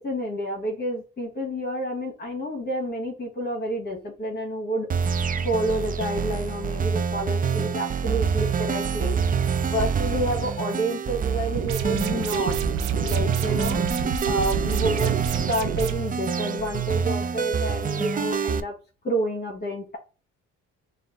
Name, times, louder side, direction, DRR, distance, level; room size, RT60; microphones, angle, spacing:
voice 1, 0.0-4.9 5.4-9.2 9.6-12.6 13.0-15.1 15.5-18.7 19.0-20.0, equal, 35° left, 1 dB, 1.4 m, -29 dB
sound 1, 4.9-18.6, right 7 dB, 30° right, 0.4 m, -26 dB
sound 2, 11.5-15.9, right 5 dB, 90° right, 0.7 m, -30 dB
4.3 x 2.5 x 3.8 m, 0.33 s
cardioid pair, 90°, 30 cm